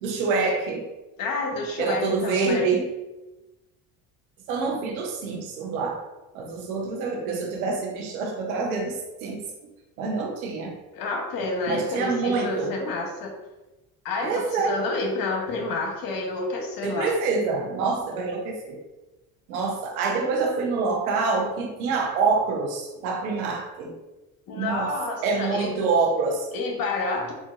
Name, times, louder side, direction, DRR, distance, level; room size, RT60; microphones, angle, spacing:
voice 1, 0.0-0.9 1.8-2.9 4.5-6.0 6.3-9.4 10.0-10.8 11.7-12.7 14.2-14.8 16.8-18.8 19.5-24.0 24.5-24.9 25.2-26.5, right 4 dB, 90° right, 1 dB, 0.7 m, -26 dB
voice 2, 1.2-2.8 10.9-13.3 14.0-17.1 24.5-25.7 26.5-27.3, left 3 dB, 55° left, 1 dB, 0.9 m, -29 dB
3.9 x 2.5 x 2.4 m, 1.0 s
supercardioid pair, 75°, 42 cm